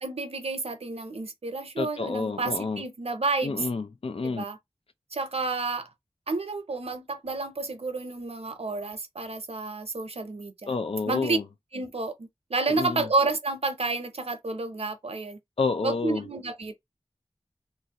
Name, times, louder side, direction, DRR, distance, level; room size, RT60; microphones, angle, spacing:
voice 1, 0.0-3.6 4.2-4.6 5.1-5.9 6.3-10.8 11.1-11.4 11.7-15.4 15.8-16.7, right 3 dB, 70° right, 0.7 m, -30 dB
voice 2, 1.8-2.8 3.4-4.5 10.7-11.4 12.7-13.1 15.6-16.3, left 4 dB, 60° left, 0.5 m, -29 dB
2.9 x 2.6 x 2.9 m
wide cardioid pair, 40°, 11 cm